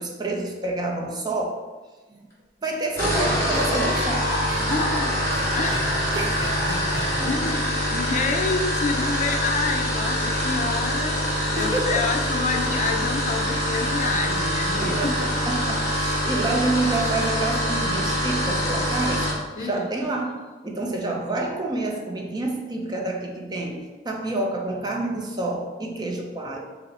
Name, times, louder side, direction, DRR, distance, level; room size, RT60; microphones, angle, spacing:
voice 1, 0.0-1.6 2.1-2.2 2.6-4.3 4.6-4.7 6.1-6.4 7.2-7.3 11.6-12.0 14.8-19.3 19.6-26.6, right 2 dB, 25° right, 1 dB, 0.5 m, -28 dB
sound 1, 2.8-19.4, equal, 15° left, 1.3 m, -25 dB
sound 2, 3.0-7.7, equal, 80° right, 1.0 m, -36 dB
voice 2, 4.7-5.2 5.5-6.0 7.2-15.2 16.4-16.6 19.6-19.9, left 4 dB, 45° left, 3 dB, 0.4 m, -28 dB
5.6 x 2.1 x 4.1 m, 1.3 s
head